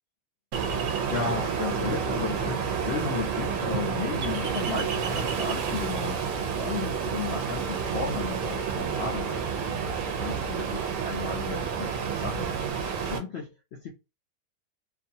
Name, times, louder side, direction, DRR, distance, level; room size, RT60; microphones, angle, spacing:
Ocean, 0.5-13.2, right 6 dB, 65° right, 0.9 m, -29 dB
voice 1, 1.0-6.2 6.5-9.8 10.1-12.0 12.2-12.5 13.1-13.9, left 5 dB, 70° left, 0.6 m, -34 dB
2.5 x 2.3 x 2.6 m
omnidirectional pair, 1.6 m